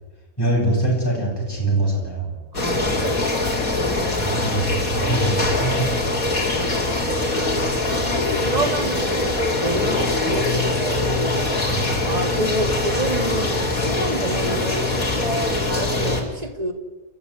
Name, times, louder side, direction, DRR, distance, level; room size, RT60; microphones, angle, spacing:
voice 1, 0.4-2.3 4.2-6.3 11.6-11.9, right 1 dB, 15° left, -4 dB, 7.5 m, -23 dB
sound 1, 2.5-16.2, left 2 dB, 80° left, 4.1 m, -23 dB
voice 2, 2.5-3.5 7.3-16.7, right 1 dB, 25° right, 6 dB, 2.4 m, -29 dB
29.0 x 14.0 x 9.8 m, 1.3 s
omnidirectional pair, 1.5 m